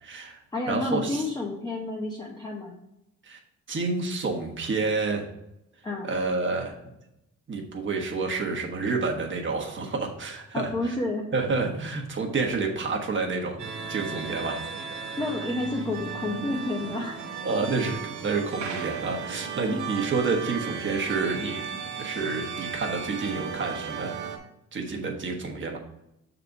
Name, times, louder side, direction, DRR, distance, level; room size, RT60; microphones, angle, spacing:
voice 1, 0.0-0.4 0.7-1.2 3.2-3.4 3.7-5.3 6.0-6.8 7.5-10.9 11.3-13.6 13.9-14.7 17.4-21.6 22.0-24.1 24.7-25.8, right 4 dB, 40° right, 1 dB, 1.3 m, -29 dB
voice 2, 0.5-2.8 5.8-6.1 10.5-11.3 15.2-17.2 17.5-17.7 19.6-19.8, left 2 dB, 15° left, -2 dB, 1.0 m, -30 dB
sound 1, 13.6-24.4, right 6 dB, 75° right, 1.1 m, -35 dB
6.5 x 4.1 x 4.7 m, 0.84 s
cardioid pair, 90°, 30 cm